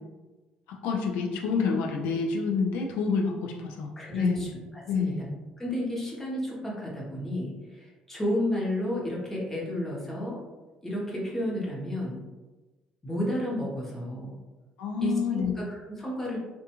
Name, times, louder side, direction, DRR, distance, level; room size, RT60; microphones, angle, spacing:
voice 1, 0.7-4.5 4.9-5.2 14.8-15.5, left 5 dB, 90° left, 0 dB, 0.4 m, -28 dB
voice 2, 4.0-5.3 5.6-10.4 10.8-12.2 13.0-14.3 15.0-16.4, left 1 dB, 10° left, -4 dB, 0.8 m, -32 dB
2.4 x 2.2 x 2.9 m, 1.2 s
cardioid pair, 105°, 3 cm